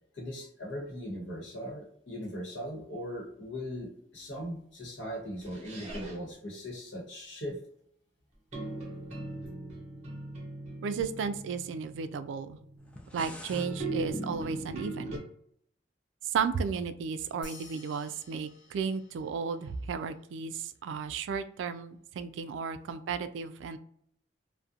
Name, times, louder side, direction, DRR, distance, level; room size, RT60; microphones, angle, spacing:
voice 1, 0.1-7.6, equal, 80° left, 0 dB, 1.0 m, -39 dB
sound 1, 5.4-6.3 8.5-15.2, right 2 dB, 40° right, 0.7 m, -40 dB
voice 2, 10.8-12.6 13.1-15.2 16.2-23.8, right 5 dB, 85° right, 12 dB, 0.3 m, -34 dB
sound 2, 12.8-13.7, left 1 dB, 5° left, 0.3 m, -46 dB
sound 3, 17.4-20.2, left 2 dB, 50° left, 1.0 m, -53 dB
2.4 x 2.1 x 2.6 m, 0.68 s
head